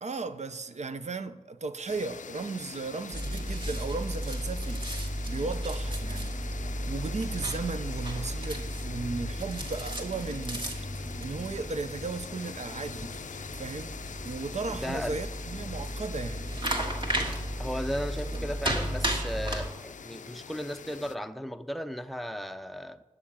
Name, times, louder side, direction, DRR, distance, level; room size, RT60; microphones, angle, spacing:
voice 1, 0.0-6.4 6.9-10.7 11.2-13.2 13.6-14.0 14.2-16.4, right 4 dB, 60° right, 0.6 m, -35 dB
sound 1, 1.9-21.2, left 6 dB, 75° left, 0.4 m, -44 dB
sound 2, 3.1-19.7, right 1 dB, 40° right, 2.0 m, -34 dB
voice 2, 14.7-15.2 17.6-23.0, equal, ahead, 0.5 m, -35 dB
9.6 x 7.0 x 8.7 m
wide cardioid pair, 75°, 13 cm